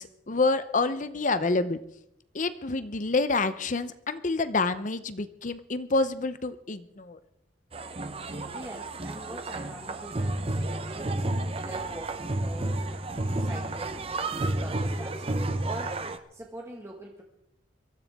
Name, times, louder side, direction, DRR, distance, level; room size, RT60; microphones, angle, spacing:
voice 1, 0.0-1.8 2.3-7.2, left 3 dB, 40° left, 13 dB, 0.7 m, -28 dB
sound 1, 7.7-16.2, right 2 dB, 30° right, 0.9 m, -31 dB
voice 2, 8.2-12.9 13.4-16.0 16.3-17.2, right 1 dB, 15° right, -1 dB, 1.8 m, -43 dB
23.0 x 14.0 x 3.6 m, 0.77 s
head